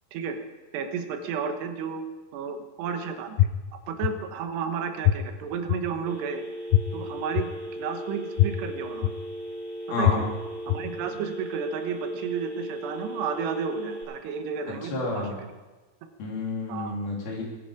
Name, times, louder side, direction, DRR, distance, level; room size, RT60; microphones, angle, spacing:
voice 1, 0.7-2.0 2.3-3.4 3.9-6.5 6.9-9.1 10.0-10.3 10.7-15.3 16.7-17.0, right 6 dB, 85° right, 6 dB, 3.2 m, -32 dB
sound 1, 3.4-3.5 4.0-4.1 5.0-5.1 5.7-5.8 6.7-6.8 7.4-7.5 8.4-8.5 9.0-9.1 10.0-10.1 10.7-10.8, left 14 dB, 80° left, 2.2 m, -19 dB
Telephone, 6.1-14.0, right 1 dB, 35° right, 6.2 m, -37 dB
voice 2, 9.9-10.3 14.9-15.4 16.2-17.4, left 2 dB, 65° left, -1 dB, 4.5 m, -30 dB
21.0 x 10.0 x 5.0 m, 1.2 s
omnidirectional pair, 4.8 m